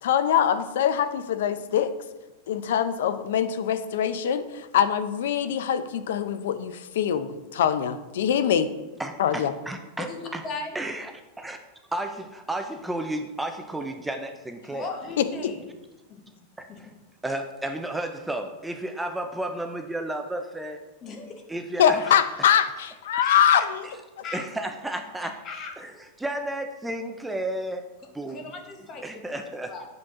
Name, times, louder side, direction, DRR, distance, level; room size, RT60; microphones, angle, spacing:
voice 1, 0.0-1.9 2.5-8.7 9.2-9.5 15.2-15.3 21.8-23.8, left 9 dB, 75° left, 12 dB, 0.5 m, -23 dB
voice 2, 9.0-10.1 10.3-10.4 10.7-11.6 11.9-14.9 16.6-16.9 17.2-20.8 21.5-22.2 24.3-25.3 25.8-27.8 28.1-28.5 29.0-29.7, right 1 dB, 5° right, 5 dB, 0.3 m, -32 dB
voice 3, 14.6-15.6 16.1-16.2 16.7-16.8 21.0-21.3 23.2-23.7 24.2-24.4 25.4-25.7 28.3-29.9, left 4 dB, 25° left, 3 dB, 0.8 m, -37 dB
7.2 x 5.1 x 3.6 m, 1.1 s
supercardioid pair, 175°, 0 cm